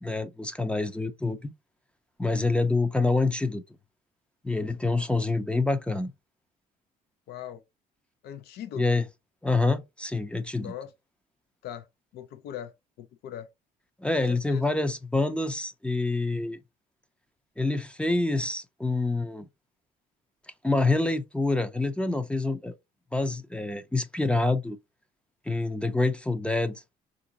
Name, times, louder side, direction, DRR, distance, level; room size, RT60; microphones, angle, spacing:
voice 1, 0.0-1.5 2.2-3.6 4.4-6.1 8.8-9.0 9.4-10.7 14.0-16.6 17.6-19.5 20.6-22.7 23.1-24.8 25.5-27.0, left 3 dB, 5° left, 0.5 m, -26 dB
voice 2, 7.3-7.6 8.2-9.0 10.6-10.9 11.6-11.9 12.1-13.5 14.3-14.6, left 10 dB, 70° left, 0.6 m, -40 dB
3.6 x 2.6 x 2.7 m
cardioid pair, 110°, 17 cm